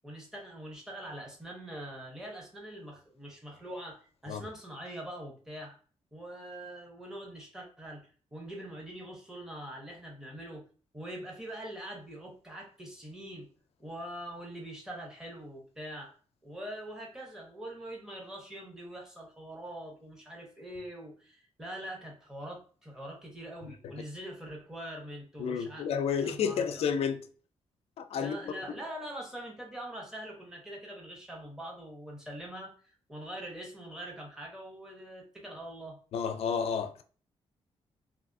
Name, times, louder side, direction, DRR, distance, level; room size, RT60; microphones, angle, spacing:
voice 1, 0.0-5.8 6.1-10.6 10.9-13.5 13.8-16.1 16.4-25.9 26.2-26.8 28.2-32.7 33.1-36.0, right 1 dB, 5° right, 0.7 m, -43 dB
voice 2, 25.4-27.2 28.0-28.4 36.1-37.0, left 7 dB, 70° left, 0.4 m, -31 dB
3.3 x 2.6 x 2.5 m
wide cardioid pair, 180°, 11 cm